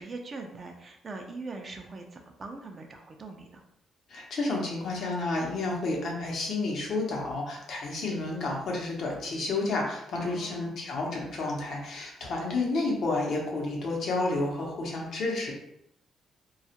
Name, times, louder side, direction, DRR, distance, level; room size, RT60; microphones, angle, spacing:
voice 1, 0.0-3.6 10.2-10.9, right 3 dB, 40° right, 3 dB, 0.4 m, -42 dB
voice 2, 4.1-15.5, left 2 dB, 65° left, -1 dB, 0.7 m, -30 dB
2.3 x 2.0 x 2.8 m, 0.79 s
cardioid pair, 90°, 0 cm